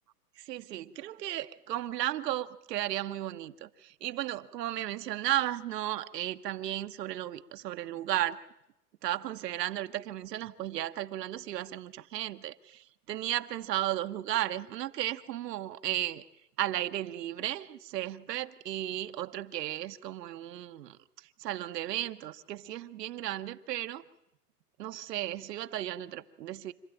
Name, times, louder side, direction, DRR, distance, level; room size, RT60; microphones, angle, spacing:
voice 1, 0.4-8.4 9.0-16.2 16.6-24.0 24.8-26.7, right 13 dB, 80° right, 1.1 m, -34 dB
27.0 x 12.5 x 9.0 m
supercardioid pair, 160°, 48 cm